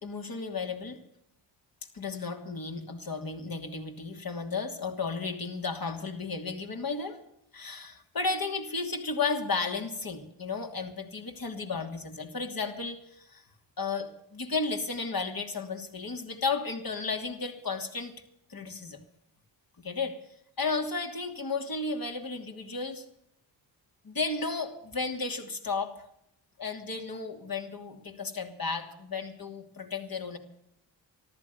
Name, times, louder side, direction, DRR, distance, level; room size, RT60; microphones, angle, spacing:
voice 1, 0.0-1.0 1.9-7.2 7.5-13.4 13.8-18.1 18.5-19.0 19.8-20.2 20.6-23.0 24.0-26.1 26.6-30.4, left 4 dB, 45° left, 4 dB, 2.9 m, -33 dB
14.0 x 12.5 x 7.0 m, 0.77 s
supercardioid pair, 50°, 48 cm